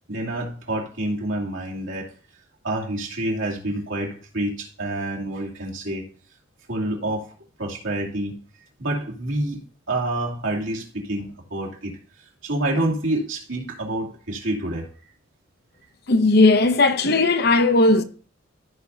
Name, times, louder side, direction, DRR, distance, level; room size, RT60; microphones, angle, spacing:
voice 1, 0.1-2.1 2.6-6.1 6.7-7.3 7.6-8.3 8.8-9.6 9.9-11.9 12.4-14.9, right 1 dB, 80° right, 2.5 m, -27 dB
voice 2, 16.1-18.0, left 2 dB, 55° left, 0.7 m, -17 dB
14.5 x 5.4 x 2.7 m
head